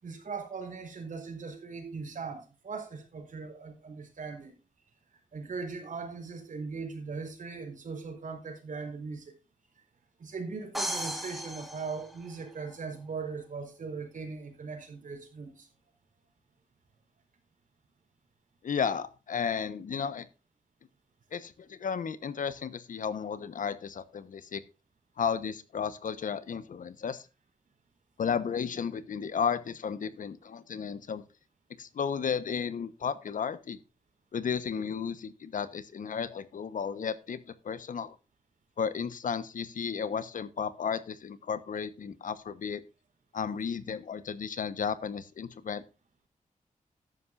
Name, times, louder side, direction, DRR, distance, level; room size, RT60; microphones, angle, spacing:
voice 1, 0.0-4.6 5.3-9.4 10.2-15.7, right 4 dB, 65° right, 4.4 m, -39 dB
sound 1, 10.7-12.7, equal, ahead, 2.5 m, -36 dB
voice 2, 18.6-20.3 21.3-24.6 25.2-27.2 28.2-31.2 31.8-33.8 34.3-38.1 38.8-42.8 43.3-45.8, left 7 dB, 70° left, 1.1 m, -33 dB
14.0 x 10.5 x 2.6 m
wide cardioid pair, 130°, 14 cm